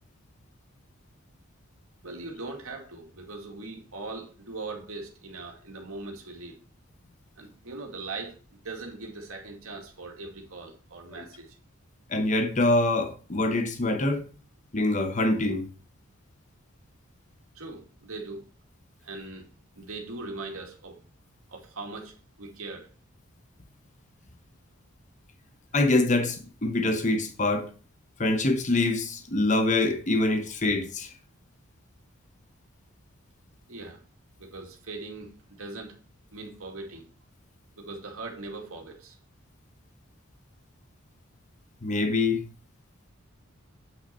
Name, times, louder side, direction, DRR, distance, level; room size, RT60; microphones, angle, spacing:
voice 1, 2.0-6.6 7.4-11.6 17.5-18.4 19.0-19.5 19.8-21.0 21.5-22.9 33.7-34.0 34.4-35.3 35.6-36.0 36.3-37.1 37.8-39.2, right 3 dB, 80° right, 2.3 m, -40 dB
voice 2, 12.1-14.2 14.7-15.7 25.7-27.7 28.2-31.1 41.8-42.5, left 2 dB, 35° left, 1.0 m, -25 dB
8.2 x 5.7 x 4.3 m
head